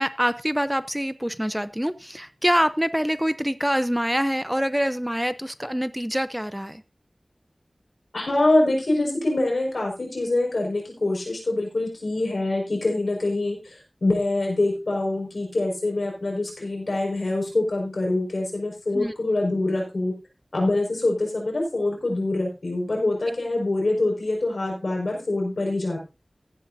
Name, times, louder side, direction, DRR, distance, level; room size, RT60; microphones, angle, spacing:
voice 1, 0.0-6.8 18.9-19.1, equal, 5° right, 13 dB, 0.6 m, -25 dB
voice 2, 8.1-20.1 20.5-26.0, left 2 dB, 80° left, -1 dB, 5.4 m, -25 dB
14.5 x 11.5 x 2.7 m, 0.28 s
wide cardioid pair, 55°, 0 cm